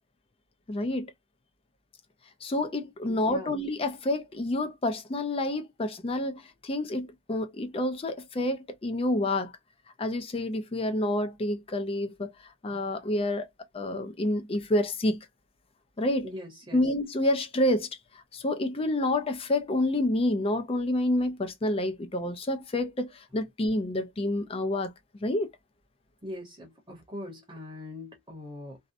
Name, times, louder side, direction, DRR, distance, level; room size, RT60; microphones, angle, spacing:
voice 1, 0.7-1.1 2.4-9.5 10.0-12.3 12.6-13.5 13.7-15.3 16.0-16.3 16.7-17.9 18.3-24.9 25.2-25.5, left 1 dB, 25° left, 0.4 m, -28 dB
voice 2, 3.1-3.5 16.2-16.9 26.2-28.8, left 1 dB, 20° right, 0.8 m, -41 dB
2.7 x 2.1 x 2.4 m
head